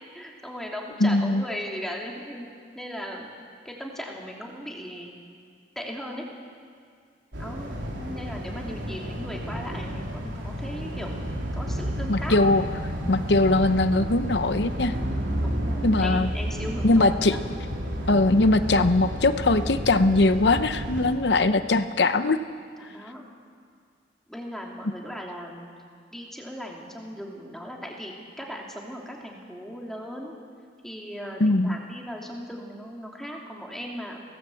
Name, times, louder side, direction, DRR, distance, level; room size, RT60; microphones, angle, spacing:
voice 1, 0.1-2.5 2.7-3.3 3.6-5.1 5.7-6.3 7.4-12.5 13.0-13.1 15.4-17.4 22.8-23.2 24.3-25.7 26.1-30.3 30.8-34.2, equal, ahead, -1 dB, 3.0 m, -37 dB
voice 2, 1.0-1.4 12.1-12.6 13.1-14.9 15.8-16.3 16.8-17.4 18.1-22.4 31.4-31.8, left 2 dB, 65° left, 10 dB, 0.8 m, -21 dB
sound 1, 7.3-21.1, equal, 80° right, 3.8 m, -31 dB
24.0 x 18.5 x 7.9 m, 2.2 s
head